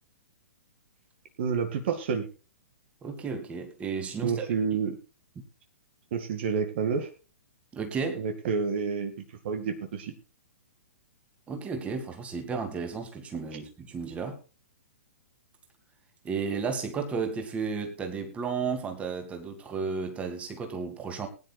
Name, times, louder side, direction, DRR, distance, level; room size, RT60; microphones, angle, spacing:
voice 1, 1.4-2.3 4.2-5.0 6.1-7.1 8.2-9.1 9.4-10.1 13.5-13.6, right 6 dB, 45° right, 7 dB, 2.1 m, -29 dB
voice 2, 3.0-4.5 7.7-8.2 11.5-14.4 16.2-21.3, right 5 dB, 15° right, 6 dB, 2.7 m, -33 dB
21.0 x 10.5 x 2.4 m, 0.32 s
figure-of-eight pair, 115°, 8 cm